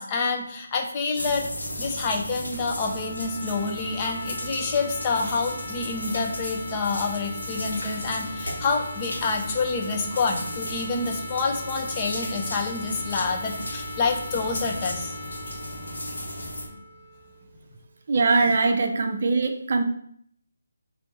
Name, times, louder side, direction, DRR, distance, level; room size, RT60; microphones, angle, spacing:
voice 1, 0.0-1.4 1.8-15.1, left 4 dB, 25° left, 2 dB, 0.7 m, -28 dB
sound 1, 1.1-16.7, equal, 85° left, 1.2 m, -35 dB
sound 2, 2.4-18.1, left 3 dB, 60° left, 1.2 m, -41 dB
voice 2, 18.1-19.8, right 3 dB, 50° right, 6 dB, 0.5 m, -22 dB
3.4 x 2.7 x 4.3 m, 0.66 s
figure-of-eight pair, 160°, 0 cm